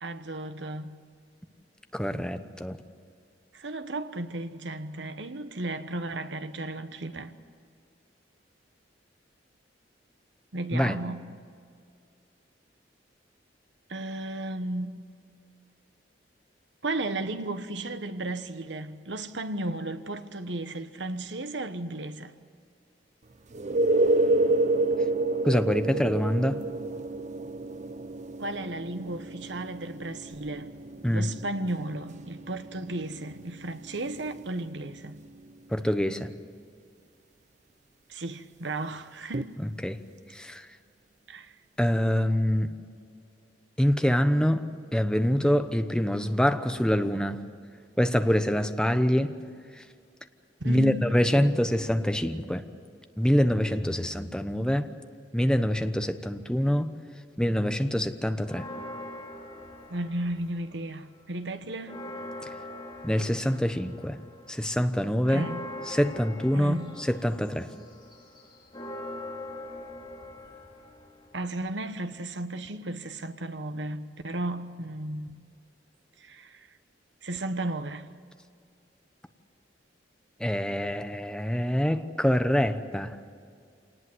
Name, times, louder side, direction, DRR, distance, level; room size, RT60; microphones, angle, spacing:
voice 1, 0.0-1.0 3.5-7.4 10.5-11.4 13.9-15.0 16.8-22.3 28.4-30.7 31.1-35.2 38.1-39.6 41.3-41.5 50.6-51.1 59.9-62.0 65.3-65.7 66.5-67.0 71.3-75.4 76.2-76.7 77.2-78.1, right 2 dB, 75° right, 1.3 m, -34 dB
voice 2, 1.9-2.8 10.7-11.0 25.4-26.6 31.0-31.3 35.7-36.3 39.8-40.0 40.3-40.6 41.8-42.7 43.8-44.6 44.9-47.4 48.0-49.3 50.6-52.6 53.2-54.9 55.3-56.9 57.4-58.6 63.0-64.2 64.5-65.5 65.9-67.7 80.4-83.1, equal, 5° left, 1.0 m, -25 dB
sound 1, 23.5-35.1 39.3-39.4, right 2 dB, 40° right, 0.6 m, -29 dB
Church bell, 58.4-60.8 61.2-61.3 61.6-71.7, left 1 dB, 25° left, 4.7 m, -42 dB
26.5 x 19.0 x 8.0 m
head